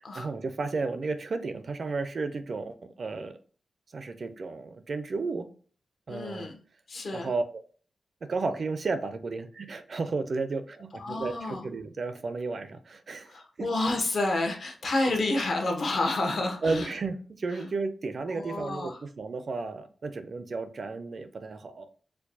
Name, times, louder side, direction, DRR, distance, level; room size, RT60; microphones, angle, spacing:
voice 1, 0.2-3.4 3.9-5.5 6.1-6.5 7.1-7.6 8.2-13.7 16.6-21.9, right 3 dB, 50° right, 10 dB, 0.4 m, -33 dB
voice 2, 6.1-6.6 6.9-7.3 11.0-11.6 13.3-16.9 18.3-19.0, left 2 dB, 60° left, 2 dB, 0.9 m, -29 dB
4.4 x 2.2 x 2.6 m, 0.43 s
wide cardioid pair, 150°, 0 cm